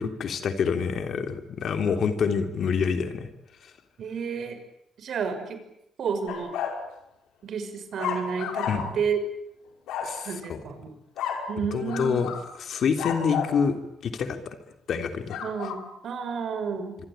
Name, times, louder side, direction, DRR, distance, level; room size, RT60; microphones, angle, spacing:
voice 1, 0.0-3.3 8.7-8.8 10.0-10.6 11.7-12.3 12.6-13.7 14.0-14.6 14.9-15.4, left 6 dB, 60° left, 7 dB, 3.3 m, -27 dB
voice 2, 4.0-4.6 5.0-5.6 6.0-6.5 7.4-9.2 10.2-11.0 11.5-12.2 15.4-17.0, right 6 dB, 60° right, 8 dB, 6.0 m, -31 dB
sound 1, 6.3-6.8 8.0-9.0 9.9-10.2 11.2-11.5 11.9-12.5 13.0-13.6 15.3-15.8, left 7 dB, 85° left, 5.2 m, -31 dB
26.0 x 24.0 x 9.1 m, 0.78 s
cardioid pair, 90°, 0 cm